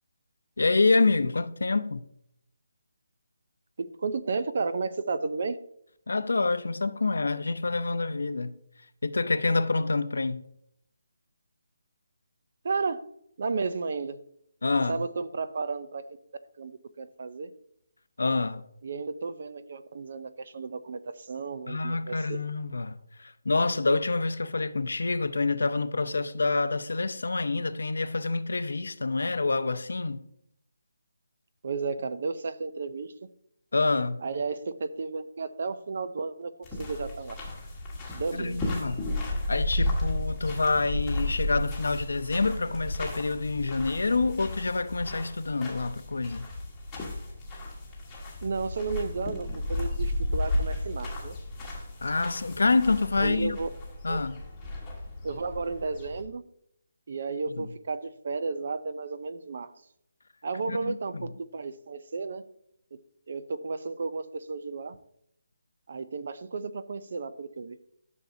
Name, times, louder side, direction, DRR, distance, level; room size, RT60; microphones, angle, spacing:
voice 1, 0.6-2.0 6.1-8.6 9.0-10.4 14.6-15.0 18.2-18.7 21.7-30.2 33.7-34.2 38.3-39.0 39.5-46.5 52.0-53.6 54.0-54.4 57.6-57.7 60.7-61.0, left 3 dB, 85° left, 0.7 m, -27 dB
voice 2, 3.8-5.6 12.6-13.0 13.4-14.2 14.9-16.2 16.6-17.5 18.8-22.4 31.6-33.1 34.2-36.5 36.8-37.4 38.1-38.6 48.4-51.4 53.2-53.7 54.1-54.2 55.2-56.4 57.1-59.7 60.4-62.4 62.9-63.0 63.3-65.0 65.9-67.8, right 4 dB, 40° right, 0.5 m, -33 dB
sound 1, 36.6-56.2, left 1 dB, 5° left, 1.3 m, -33 dB
12.0 x 6.3 x 2.7 m
hypercardioid pair, 175°, 0 cm